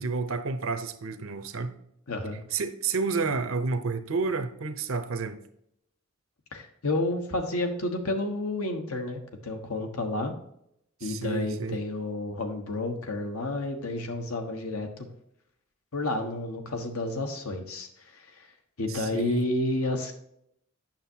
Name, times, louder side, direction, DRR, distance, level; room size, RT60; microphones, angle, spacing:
voice 1, 0.0-1.7 2.5-5.4 11.0-11.8 18.9-19.5, right 4 dB, 70° right, 9 dB, 0.7 m, -30 dB
voice 2, 2.1-2.4 6.5-10.3 11.0-15.1 15.9-18.5 18.8-20.1, left 2 dB, 85° left, 4 dB, 1.3 m, -30 dB
8.8 x 6.4 x 2.8 m, 0.74 s
head